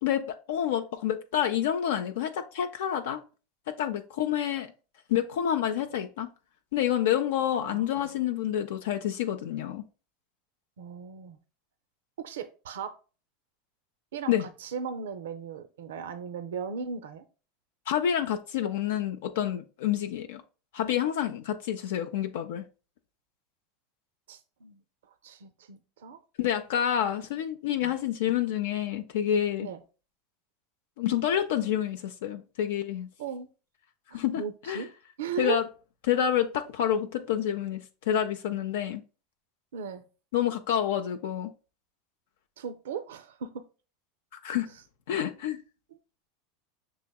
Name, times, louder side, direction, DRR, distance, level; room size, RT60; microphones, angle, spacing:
voice 1, 0.0-3.2 3.7-4.7 5.1-6.3 6.7-9.8 14.3-14.4 17.9-20.4 20.7-22.6 26.4-29.7 31.0-33.1 34.1-34.8 35.4-35.6 36.1-39.0 40.3-41.5 44.4-44.7 45.1-45.6, left 10 dB, 75° left, 0.4 m, -28 dB
voice 2, 10.8-11.4 12.2-12.9 14.1-17.2 24.3-26.2 27.8-28.0 29.6-29.8 33.2-33.5 34.1-34.9 35.2-35.6 39.7-40.0 42.6-43.6 44.7-44.8, right 6 dB, 85° right, 0.4 m, -37 dB
6.2 x 2.9 x 2.3 m
supercardioid pair, 110°, 0 cm